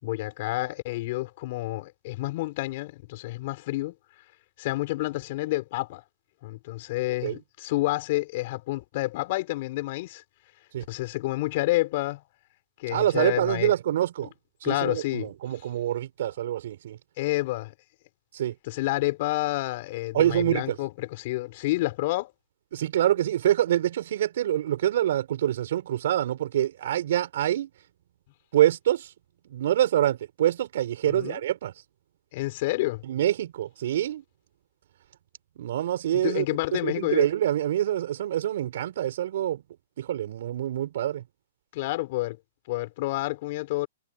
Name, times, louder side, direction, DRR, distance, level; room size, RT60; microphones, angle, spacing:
voice 1, 0.0-3.9 4.6-6.0 6.4-10.2 10.9-12.2 12.8-13.7 14.6-15.3 17.2-17.7 18.7-22.3 31.1-31.4 32.3-33.0 36.1-37.3 41.7-42.4 42.7-43.9, left 19 dB, 45° left, 5.2 m, -29 dB
voice 2, 12.9-14.3 14.6-17.0 18.3-18.6 20.1-20.8 22.7-27.7 28.5-29.1 29.4-31.7 33.0-34.2 35.6-36.4 36.7-39.6 40.0-41.2, right 12 dB, 60° right, 5.8 m, -26 dB
hypercardioid pair, 155°, 0 cm